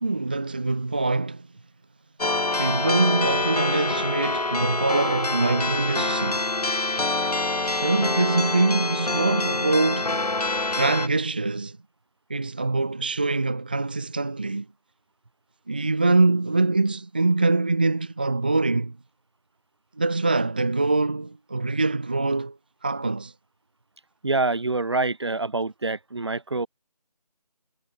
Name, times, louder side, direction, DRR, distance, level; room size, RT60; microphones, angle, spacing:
voice 1, 0.0-1.5 2.6-6.5 7.6-10.2 10.7-11.8 12.3-14.7 15.7-19.0 20.0-22.6 22.8-23.3, right 3 dB, 15° right, 0.9 m, -24 dB
sound 1, 2.2-11.1, left 2 dB, 65° left, 2.1 m, -26 dB
voice 2, 24.2-26.7, right 3 dB, 40° right, 1.4 m, -26 dB
figure-of-eight pair, 170°, 21 cm